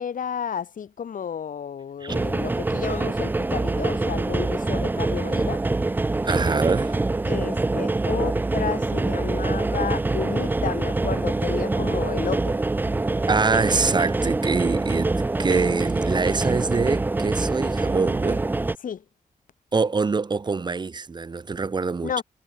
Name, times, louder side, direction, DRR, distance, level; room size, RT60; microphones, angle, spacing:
voice 1, 0.0-5.6 7.3-12.6 18.8-19.0 22.0-22.2, left 7 dB, 75° left, 5.0 m, -31 dB
sound 1, 2.1-18.7, right 2 dB, 15° right, 0.4 m, -25 dB
voice 2, 6.2-7.0 13.3-15.1 15.4-18.4 19.7-22.2, right 4 dB, 30° right, 0.9 m, -24 dB
wide cardioid pair, 140°, 14 cm